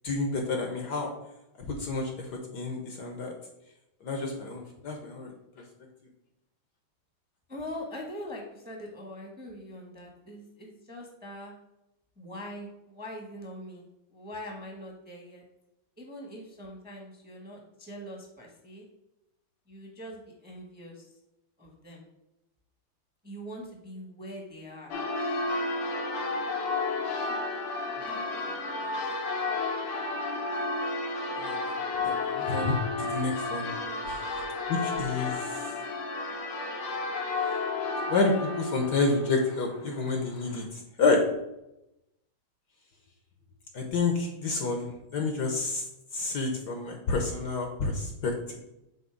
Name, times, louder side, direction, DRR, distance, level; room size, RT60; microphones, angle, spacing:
voice 1, 0.0-1.1 1.7-2.3 2.5-3.3 4.0-5.3 31.4-33.7 34.1-34.2 34.7-35.6 38.1-41.2 43.7-45.8 46.1-48.6, left 3 dB, 60° left, 3 dB, 1.3 m, -29 dB
voice 2, 7.5-11.5 12.2-15.4 16.0-18.8 19.7-21.1 21.6-22.0 23.2-24.9 27.0-27.4 28.0-28.9 33.7-34.0, equal, 5° right, 0 dB, 1.0 m, -43 dB
Church bell, 24.9-40.6, left 3 dB, 90° left, 1.9 m, -32 dB
7.9 x 2.9 x 5.9 m, 0.89 s
omnidirectional pair, 2.3 m